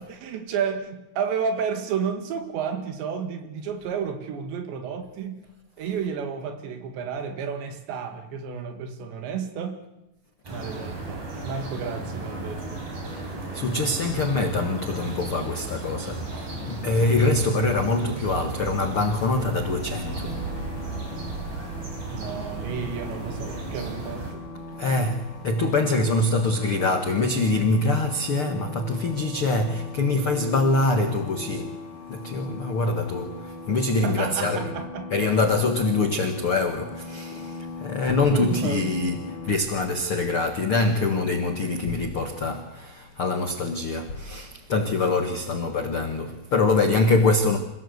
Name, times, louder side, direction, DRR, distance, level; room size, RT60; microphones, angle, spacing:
voice 1, 0.0-5.4 5.8-9.8 10.5-12.9 22.1-24.4 34.0-35.1 38.3-39.1, right 6 dB, 75° right, 4.1 m, -31 dB
sound 1, 10.5-24.3, right 2 dB, 55° right, 6.8 m, -35 dB
voice 2, 13.2-20.4 24.8-31.8 32.1-34.7 35.1-47.6, left 2 dB, 75° left, 1.2 m, -24 dB
sound 2, 16.5-25.7, right 3 dB, 35° right, 6.2 m, -42 dB
sound 3, 20.0-39.6, left 3 dB, 50° left, 4.0 m, -40 dB
27.0 x 17.0 x 8.0 m
omnidirectional pair, 5.2 m